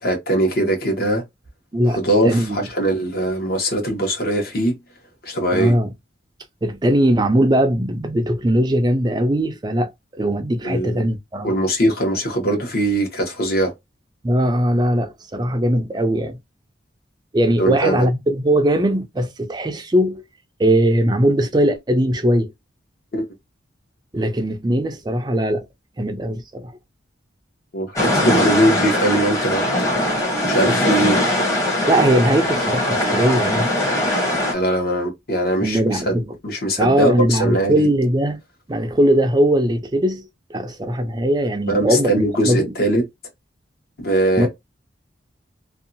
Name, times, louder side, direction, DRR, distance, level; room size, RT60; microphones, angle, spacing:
voice 1, 0.0-1.2 1.9-4.8 5.2-5.7 10.6-11.1 11.4-13.7 17.6-18.1 23.1-23.2 27.7-29.6 30.0-31.2 34.5-36.2 36.4-37.9 41.7-43.0 44.0-44.5, right 1 dB, 55° left, 1.1 m, -21 dB
voice 2, 1.7-2.6 5.5-5.9 6.6-11.5 14.2-16.4 17.3-20.2 20.6-22.5 24.1-25.7 26.0-26.8 31.9-33.7 35.6-36.3 36.8-38.4 38.7-42.7 44.4-44.5, right 1 dB, 20° right, 0.4 m, -19 dB
sound 1, 28.0-34.5, left 1 dB, 15° left, 0.9 m, -20 dB
2.7 x 2.3 x 2.6 m
head